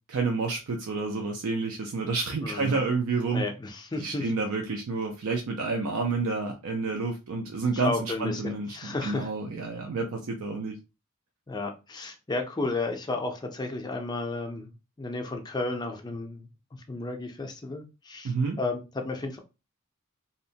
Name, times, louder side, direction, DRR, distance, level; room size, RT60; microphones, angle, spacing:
voice 1, 0.1-3.5 4.0-10.8 18.2-18.6, right 4 dB, 85° right, 0.4 m, -29 dB
voice 2, 2.4-2.8 3.3-4.3 7.8-9.3 11.5-14.7 15.0-19.4, left 2 dB, 20° left, 0.4 m, -33 dB
2.8 x 2.1 x 2.7 m
head